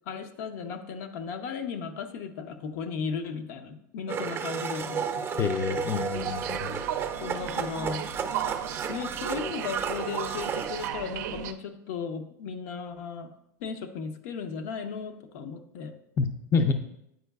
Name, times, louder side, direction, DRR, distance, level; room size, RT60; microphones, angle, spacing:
voice 1, 0.1-5.6 7.2-8.3 8.9-13.3 13.6-15.9, left 6 dB, 70° left, 6 dB, 0.7 m, -36 dB
Domestic sounds home sounds, 4.1-10.9, right 6 dB, 25° right, 0.6 m, -33 dB
voice 2, 5.4-6.8 16.2-16.7, left 5 dB, 30° left, 6 dB, 0.5 m, -27 dB
sound 1, 6.1-11.5, right 10 dB, 75° right, 0.4 m, -36 dB
9.1 x 4.5 x 2.3 m, 0.78 s
supercardioid pair, 115°, 9 cm